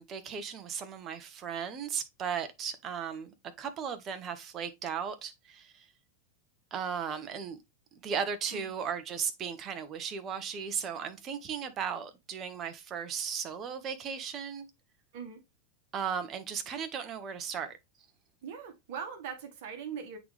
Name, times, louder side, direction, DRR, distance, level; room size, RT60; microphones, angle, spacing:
voice 1, 0.0-5.9 6.7-7.6 8.0-14.7 15.9-17.7, right 7 dB, 30° right, 1.1 m, -36 dB
voice 2, 18.4-20.2, right 7 dB, 50° right, 1.6 m, -41 dB
8.2 x 4.0 x 3.3 m
figure-of-eight pair, 90°, 0 cm